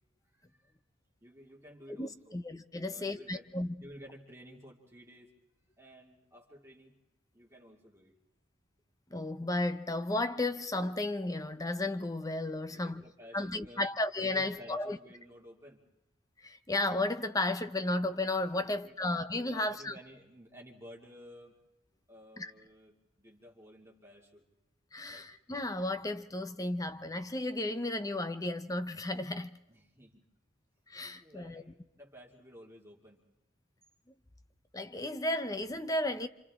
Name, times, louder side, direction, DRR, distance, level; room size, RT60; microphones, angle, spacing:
voice 1, 0.2-0.7 1.2-2.4 2.9-3.5 3.8-5.3 5.8-7.0 7.3-8.1 12.7-13.9 14.2-15.8 18.5-19.0 19.5-21.6 22.1-24.4 25.1-25.3 29.7-30.2 31.1-33.2, equal, 15° right, 2.6 m, -53 dB
voice 2, 2.0-3.7 9.1-13.0 13.3-15.0 16.4-19.9 22.4-22.5 24.9-29.5 30.9-31.6 34.7-36.3, left 2 dB, 20° left, 0.8 m, -33 dB
29.5 x 27.0 x 3.7 m
head